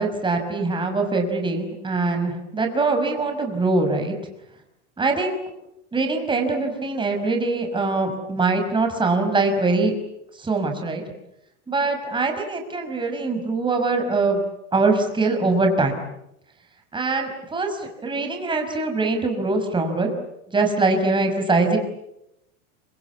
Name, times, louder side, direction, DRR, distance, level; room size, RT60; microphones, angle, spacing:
voice 1, 0.0-4.2 5.0-5.4 5.9-9.9 10.3-11.0 11.7-14.4 14.7-16.0 16.9-20.1 20.5-21.8, right 3 dB, 15° right, 4 dB, 5.5 m, -23 dB
27.5 x 25.5 x 8.5 m, 0.83 s
supercardioid pair, 135°, 37 cm